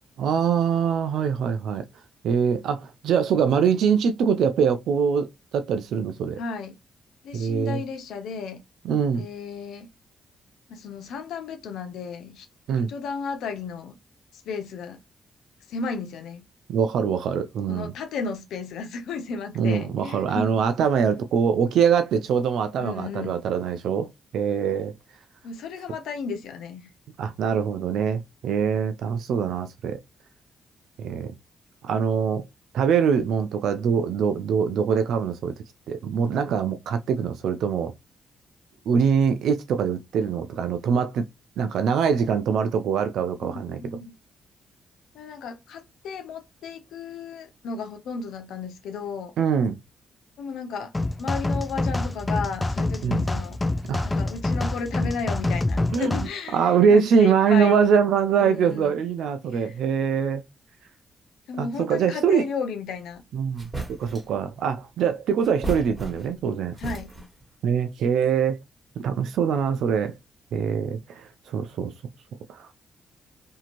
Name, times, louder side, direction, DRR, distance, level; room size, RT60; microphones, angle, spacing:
voice 1, 0.2-1.8 2.2-5.3 5.5-6.4 7.3-7.8 8.8-9.3 12.7-12.9 16.7-17.9 19.6-24.1 24.3-24.9 27.2-30.0 31.0-31.3 31.8-32.4 32.7-35.5 35.9-37.9 38.9-41.2 41.6-43.8 49.4-49.7 53.0-53.2 53.9-54.1 55.9-56.2 56.5-60.4 61.6-62.5 63.3-66.8 67.6-68.6 69.0-70.1 70.5-71.9 72.5-72.7, right 7 dB, 80° right, 0.3 m, -23 dB
voice 2, 6.4-6.8 7.2-8.6 9.2-9.9 10.7-12.5 12.7-14.0 14.3-15.0 15.7-16.4 17.7-20.6 22.8-23.4 25.4-26.9 43.4-44.2 45.1-49.3 50.4-53.6 54.0-58.0 58.4-59.0 59.4-59.8 61.5-63.2 66.8-67.1, left 5 dB, 85° left, 0.4 m, -34 dB
sound 1, 50.9-56.3, left 2 dB, 20° left, 0.4 m, -26 dB
sound 2, 63.1-63.2 63.6-64.4 65.4-66.5 66.8-67.5, right 2 dB, 20° right, 1.5 m, -35 dB
2.7 x 2.5 x 2.9 m
cardioid pair, 75°, 0 cm